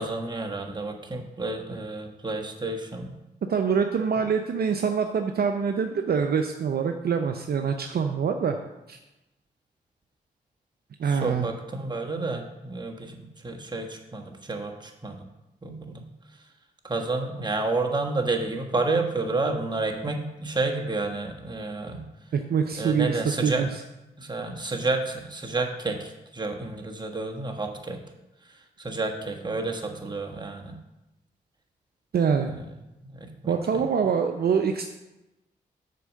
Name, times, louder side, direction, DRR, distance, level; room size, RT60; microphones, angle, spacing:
voice 1, 0.0-3.1 11.1-13.1 13.4-14.7 15.0-15.2 15.6-16.0 16.8-22.0 22.8-23.7 24.2-28.0 28.8-30.7 33.4-33.5, right 3 dB, 25° right, 2 dB, 1.5 m, -30 dB
voice 2, 3.5-8.6 8.9-9.0 11.0-11.5 22.3-23.7 32.1-32.5 33.5-34.9, right 6 dB, 60° right, 5 dB, 0.6 m, -25 dB
6.7 x 4.7 x 6.5 m, 0.97 s
supercardioid pair, 45°, 18 cm